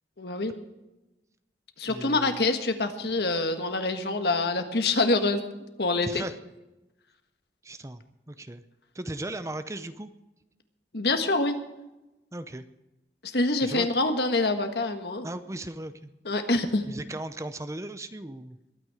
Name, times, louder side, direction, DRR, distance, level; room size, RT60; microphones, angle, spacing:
voice 1, 0.2-0.5 1.8-5.4 5.8-6.2 10.9-11.5 13.2-15.3 16.2-16.8, left 2 dB, 65° left, 6 dB, 1.6 m, -26 dB
voice 2, 1.9-2.5 6.0-6.3 7.6-8.0 8.3-8.6 8.9-10.1 12.3-12.6 13.6-13.9 15.2-16.1 16.9-18.6, right 1 dB, 15° right, 11 dB, 0.6 m, -37 dB
22.0 x 9.4 x 5.0 m, 0.97 s
head